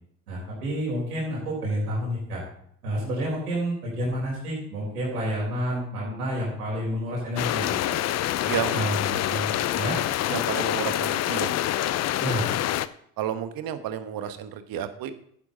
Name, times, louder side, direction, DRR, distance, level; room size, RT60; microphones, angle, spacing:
voice 1, 0.3-2.4 2.8-7.9 8.7-10.0 12.2-12.5, equal, 80° right, -5 dB, 4.1 m, -29 dB
sound 1, 7.4-12.9, left 13 dB, 35° left, 0.6 m, -26 dB
voice 2, 8.5-8.9 10.3-11.5 13.2-15.1, right 10 dB, 50° right, 10 dB, 1.3 m, -31 dB
11.0 x 9.7 x 3.8 m, 0.66 s
hypercardioid pair, 65°, 45 cm